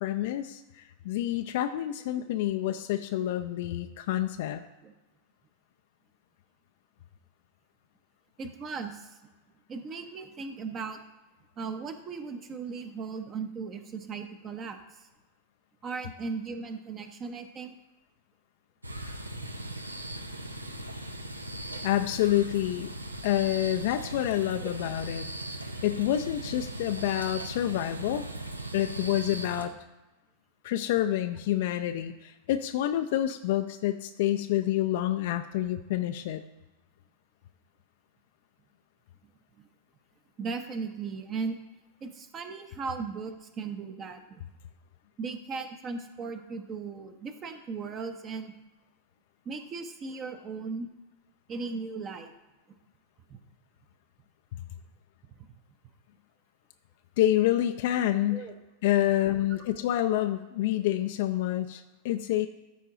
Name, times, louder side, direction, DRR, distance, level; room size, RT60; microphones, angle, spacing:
voice 1, 0.0-4.6 21.8-22.9 23.2-25.3 25.8-28.3 28.7-29.7 30.6-36.4 57.2-58.5 58.8-62.5, left 13 dB, 50° left, 8 dB, 0.4 m, -28 dB
voice 2, 8.4-9.2 9.7-11.0 11.6-14.8 15.8-17.8 24.6-24.7 40.4-41.6 42.0-44.4 45.2-48.5 49.5-50.9 51.5-52.3 53.3-53.4 58.3-58.5, right 4 dB, 30° right, 7 dB, 0.8 m, -37 dB
sound 1, 18.8-29.7, right 1 dB, 85° right, 0.7 m, -39 dB
13.5 x 4.6 x 3.7 m, 1.1 s
figure-of-eight pair, 90°, 0 cm